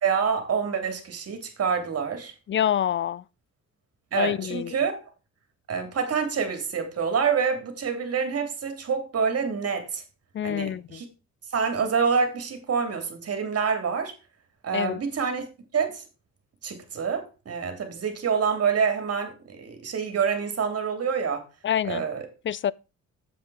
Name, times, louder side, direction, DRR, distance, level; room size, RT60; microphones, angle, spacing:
voice 1, 0.0-2.3 4.1-5.1 5.7-10.0 10.4-11.0 11.5-14.1 14.6-15.4 15.7-16.0 16.6-21.4 21.8-22.3, right 6 dB, 50° right, 3.1 m, -27 dB
voice 2, 2.5-3.2 4.2-4.7 10.4-10.8 14.7-15.0 21.6-22.0 22.5-22.7, left 10 dB, 40° left, 0.4 m, -26 dB
7.9 x 7.6 x 4.8 m
cardioid pair, 90°, 30 cm